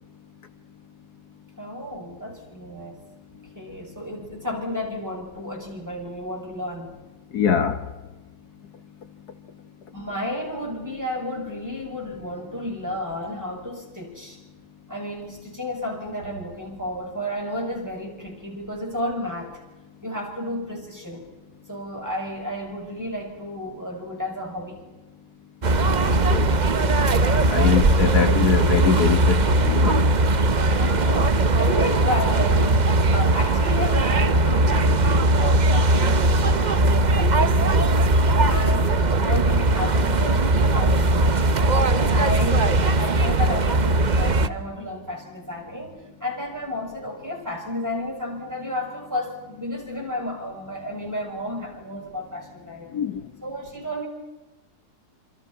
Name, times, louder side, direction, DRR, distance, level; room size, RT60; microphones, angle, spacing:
voice 1, 1.6-3.0 3.5-6.9 9.9-14.4 14.9-19.6 20.0-21.3 21.7-24.8 30.7-38.2 38.5-52.9 53.4-54.1, left 1 dB, 10° right, 6.7 m, -32 dB
voice 2, 7.3-7.8 26.1-26.5 27.5-30.0 52.9-53.2, left 7 dB, 75° left, 1.8 m, -22 dB
sound 1, 25.6-44.5, right 2 dB, 35° right, 0.9 m, -19 dB
27.5 x 27.5 x 5.7 m
omnidirectional pair, 1.7 m